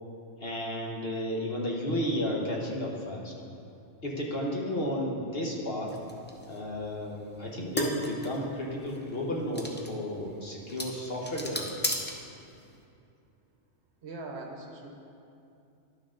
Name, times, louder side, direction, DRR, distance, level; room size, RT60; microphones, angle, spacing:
voice 1, 0.4-3.3 4.0-5.9 6.5-11.8, left 1 dB, 50° left, -2 dB, 1.3 m, -33 dB
sound 1, 5.9-12.8, equal, 15° left, 0.3 m, -37 dB
voice 2, 14.0-14.9, right 2 dB, 60° right, 2 dB, 1.1 m, -41 dB
11.0 x 6.3 x 3.7 m, 2.6 s
omnidirectional pair, 1.3 m